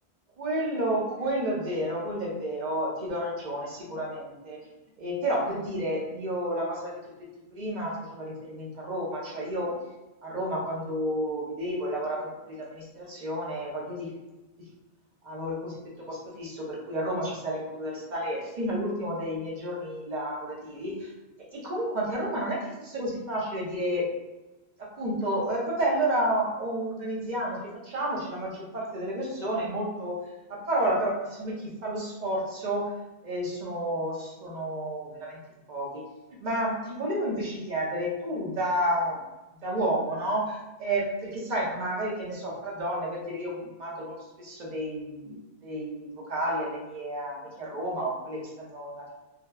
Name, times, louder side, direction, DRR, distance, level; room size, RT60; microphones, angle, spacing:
voice 1, 0.4-4.6 5.0-7.0 7.5-9.7 10.2-14.1 15.2-15.8 16.1-21.1 21.5-24.1 24.8-30.2 30.5-32.9 33.2-35.4 35.7-36.0 36.4-39.2 39.6-45.3 45.6-49.1, right 1 dB, 50° right, -3 dB, 0.8 m, -31 dB
2.8 x 2.1 x 2.2 m, 1.1 s
omnidirectional pair, 1.0 m